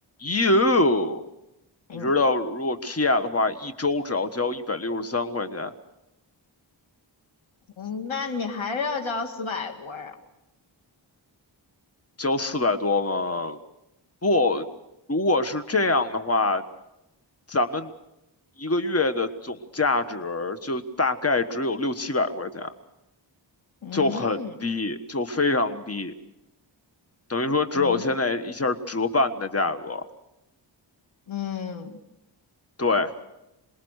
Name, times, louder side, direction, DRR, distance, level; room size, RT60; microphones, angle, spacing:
voice 1, 0.2-1.3 1.9-5.7 12.2-13.6 14.2-14.7 15.1-16.6 17.5-17.9 18.6-22.7 23.9-26.1 27.3-30.0 32.8-33.1, left 2 dB, 30° left, 9 dB, 1.5 m, -24 dB
voice 2, 7.8-10.1 23.8-24.5 27.7-28.0 31.3-31.9, left 5 dB, 80° left, 3 dB, 2.2 m, -31 dB
27.0 x 21.0 x 6.6 m, 0.91 s
wide cardioid pair, 60°, 47 cm